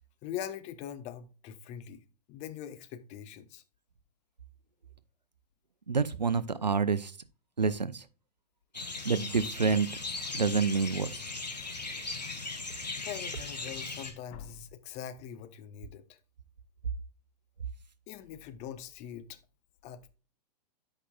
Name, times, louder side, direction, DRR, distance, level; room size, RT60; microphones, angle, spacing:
voice 1, 0.2-2.0 2.3-3.6 12.2-12.3 13.0-16.2 18.1-19.4 19.8-20.1, left 9 dB, 30° left, 0.9 m, -42 dB
voice 2, 5.9-7.1 7.6-8.0 9.0-9.9 10.3-11.2, right 5 dB, 85° right, 0.6 m, -27 dB
sound 1, 8.7-14.1, left 3 dB, 80° left, 1.7 m, -38 dB
12.5 x 5.3 x 2.4 m
figure-of-eight pair, 100°, 21 cm